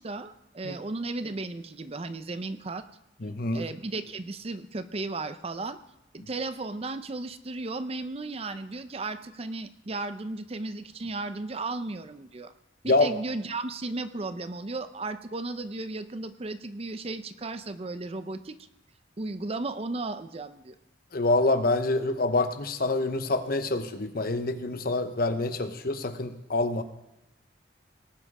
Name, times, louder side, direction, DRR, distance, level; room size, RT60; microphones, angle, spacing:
voice 1, 0.0-2.8 3.5-5.8 6.1-12.5 12.8-18.6 19.2-20.8, right 3 dB, 35° right, 11 dB, 0.6 m, -35 dB
voice 2, 3.2-3.6 12.9-13.1 21.1-26.8, left 2 dB, 55° left, 9 dB, 0.9 m, -26 dB
18.5 x 7.7 x 4.9 m, 0.95 s
head